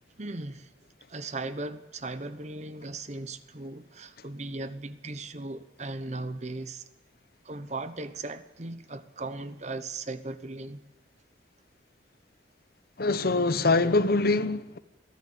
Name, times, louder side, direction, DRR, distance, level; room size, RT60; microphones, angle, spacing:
voice 1, 0.2-0.7 1.1-6.8 7.4-10.8, right 2 dB, 35° right, 1.0 m, -37 dB
voice 2, 13.0-14.8, left 3 dB, 50° left, 1.0 m, -24 dB
21.5 x 15.0 x 8.7 m
head